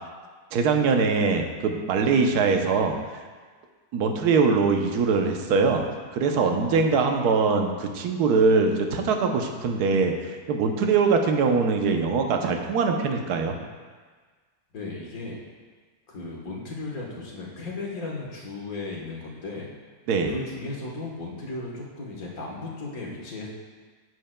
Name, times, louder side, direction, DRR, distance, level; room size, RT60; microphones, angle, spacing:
voice 1, 0.5-3.0 3.9-5.8 6.1-13.6 20.1-20.3, right 4 dB, 75° right, 4 dB, 1.2 m, -22 dB
voice 2, 6.3-7.0 14.7-15.4 16.1-19.7 20.3-23.5, left 2 dB, 60° left, -3 dB, 1.7 m, -36 dB
10.0 x 7.9 x 2.2 m, 1.5 s
omnidirectional pair, 1.8 m